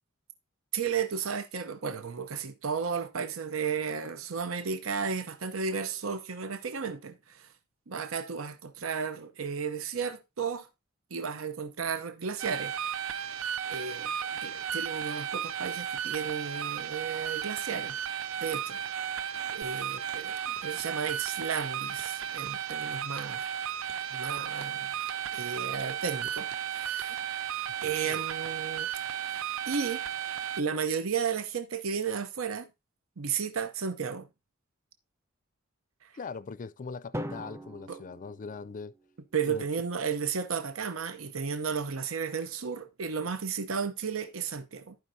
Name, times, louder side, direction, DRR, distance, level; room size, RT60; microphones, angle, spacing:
voice 1, 0.7-7.5 7.9-10.7 11.1-12.7 13.7-14.1 14.4-18.0 18.4-18.8 19.5-23.4 24.1-24.9 25.3-27.2 27.8-28.9 29.7-30.0 30.6-32.7 33.2-34.3 36.0-36.1 37.9-38.0 39.3-45.0, right 6 dB, 85° right, 0.8 m, -33 dB
sound 1, 12.4-30.6, right 9 dB, 70° right, 0.4 m, -34 dB
sound 2, 19.6-19.7 20.1-20.8 21.3-21.5 22.0-22.7 23.2-23.4 23.9-24.6 25.1-25.3 25.8-26.6 27.0-27.1, right 4 dB, 55° right, 1.3 m, -48 dB
voice 2, 27.8-28.2 36.1-38.9 39.5-39.7, left 4 dB, 40° left, 0.4 m, -41 dB
Drum, 37.1-39.2, equal, 15° right, 0.5 m, -41 dB
14.5 x 5.2 x 2.7 m
head